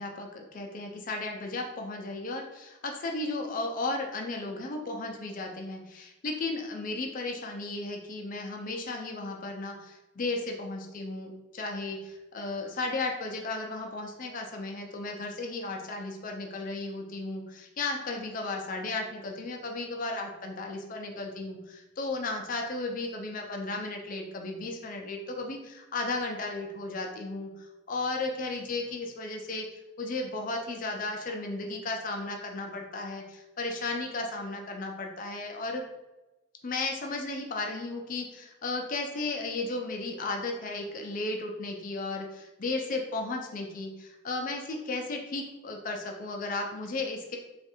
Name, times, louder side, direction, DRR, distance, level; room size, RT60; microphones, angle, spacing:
voice 1, 0.0-29.7 30.0-35.8 36.6-47.4, left 2 dB, 40° left, 2 dB, 0.4 m, -34 dB
3.4 x 2.5 x 4.1 m, 1.0 s
head